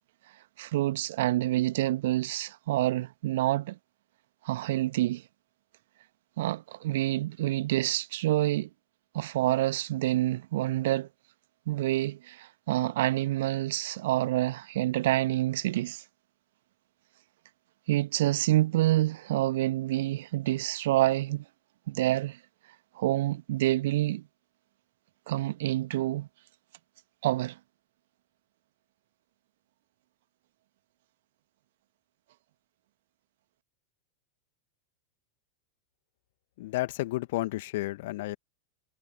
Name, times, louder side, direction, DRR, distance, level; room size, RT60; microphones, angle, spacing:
voice 1, 0.6-3.8 4.4-5.2 6.4-8.7 9.1-11.1 11.7-16.0 17.9-21.4 21.9-22.4 22.9-24.2 25.3-26.3 27.2-27.6, right 15 dB, 55° right, 1.6 m, -27 dB
voice 2, 36.6-38.4, left 18 dB, 50° left, 2.1 m, -31 dB
figure-of-eight pair, 90°, 0 cm